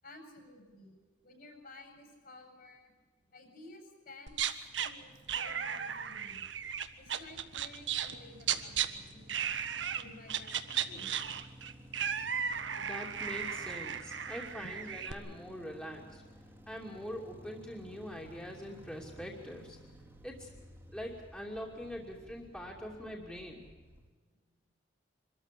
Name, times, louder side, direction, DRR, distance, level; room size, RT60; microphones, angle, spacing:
voice 1, 0.0-2.9 3.3-6.4 7.0-11.1 12.2-12.4 14.6-14.8, left 2 dB, 55° left, 4 dB, 7.5 m, -54 dB
sound 1, 4.3-4.9 5.3-8.9 9.3-10.0 10.3-15.1, right 8 dB, 80° right, 1.4 m, -35 dB
sound 2, 4.6-24.1, equal, 10° right, 2.4 m, -55 dB
voice 2, 12.8-16.2 16.7-19.8 20.2-20.5 20.9-23.7, equal, 5° left, -2 dB, 2.8 m, -43 dB
25.0 x 14.0 x 10.0 m, 1.4 s
head